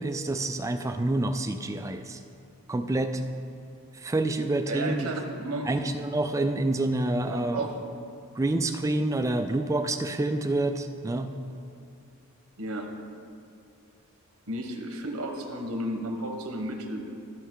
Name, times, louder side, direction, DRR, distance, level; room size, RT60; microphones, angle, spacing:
voice 1, 0.0-2.2 2.7-3.2 3.9-5.1 5.7-7.7 8.3-11.3, right 2 dB, 15° right, 7 dB, 0.3 m, -27 dB
voice 2, 4.7-5.9 7.3-7.7 12.6-12.9 14.5-17.1, right 1 dB, 90° right, 3 dB, 1.1 m, -33 dB
14.5 x 5.5 x 3.8 m, 2.4 s
head